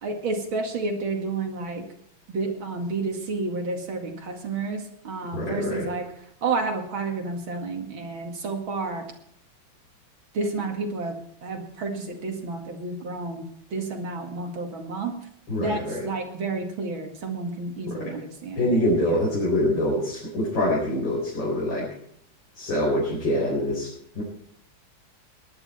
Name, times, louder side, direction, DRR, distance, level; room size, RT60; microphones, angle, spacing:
voice 1, 0.0-1.8 2.3-6.1 6.4-9.0 10.3-11.1 11.4-13.4 13.7-15.1 15.6-18.7, right 3 dB, 75° right, 3 dB, 2.9 m, -30 dB
voice 2, 5.3-5.9 15.5-16.0 17.9-18.1 18.6-21.9 22.5-23.9 24.1-24.2, left 1 dB, 70° left, -5 dB, 5.1 m, -25 dB
18.5 x 11.5 x 4.4 m, 0.68 s
omnidirectional pair, 2.2 m